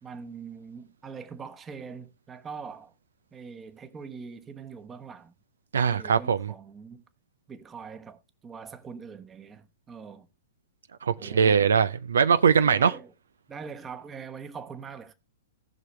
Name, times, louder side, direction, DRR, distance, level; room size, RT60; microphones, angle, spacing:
voice 1, 0.0-2.9 3.3-5.3 5.9-7.0 7.5-10.3 11.2-11.7 12.6-13.1 13.5-15.1, right 6 dB, 20° right, 1.1 m, -42 dB
voice 2, 5.7-6.5 11.0-12.9, right 6 dB, 70° right, 0.5 m, -21 dB
18.0 x 6.1 x 3.1 m
figure-of-eight pair, 115°, 0 cm